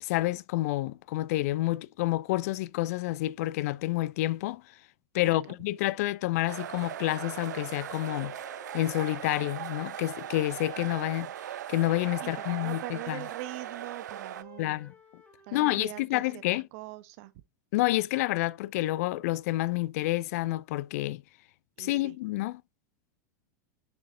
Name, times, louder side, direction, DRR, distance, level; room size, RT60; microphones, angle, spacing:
voice 1, 0.0-4.6 5.1-8.3 8.7-11.3 11.7-13.2 14.6-14.9 15.5-16.6 17.7-21.2 21.8-22.6, left 17 dB, 55° left, 0.4 m, -29 dB
voice 2, 5.2-5.6 12.2-14.8 15.4-17.3 21.8-22.2, right 17 dB, 50° right, 0.8 m, -42 dB
sound 1, 6.5-14.4, right 11 dB, 70° right, 0.4 m, -39 dB
Wind instrument woodwind instrument, 6.7-10.9 11.7-15.6, left 4 dB, 15° left, 2.0 m, -54 dB
6.5 x 6.5 x 2.5 m
figure-of-eight pair, 95°, 10 cm